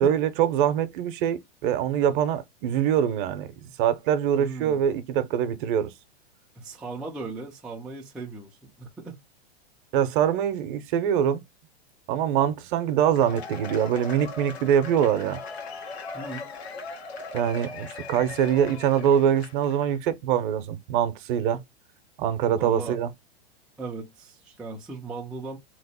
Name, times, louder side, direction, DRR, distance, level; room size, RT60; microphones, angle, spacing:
voice 1, 0.0-3.5 3.8-5.9 9.9-11.4 12.1-15.4 17.3-21.6 22.2-23.1, right 9 dB, 55° right, 0.7 m, -24 dB
voice 2, 4.3-4.8 6.6-9.2 16.1-16.5 22.4-23.0 23.8-25.6, right 3 dB, 5° right, 0.3 m, -37 dB
Cheering / Applause / Crowd, 13.0-19.8, left 4 dB, 90° left, 1.1 m, -39 dB
3.0 x 2.0 x 4.0 m
hypercardioid pair, 130°, 31 cm